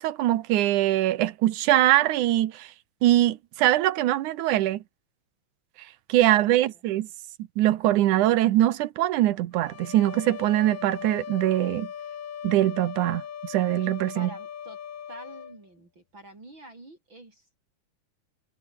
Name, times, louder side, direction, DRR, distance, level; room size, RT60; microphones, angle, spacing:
voice 1, 0.0-2.7 3.0-4.8 6.1-7.1 7.6-11.9 12.4-14.3, right 14 dB, 85° right, 2.5 m, -22 dB
sound 1, 9.5-15.6, left 8 dB, 75° left, 3.5 m, -39 dB
voice 2, 14.1-14.8 15.1-17.6, right 1 dB, 40° right, 6.8 m, -47 dB
omnidirectional pair, 3.4 m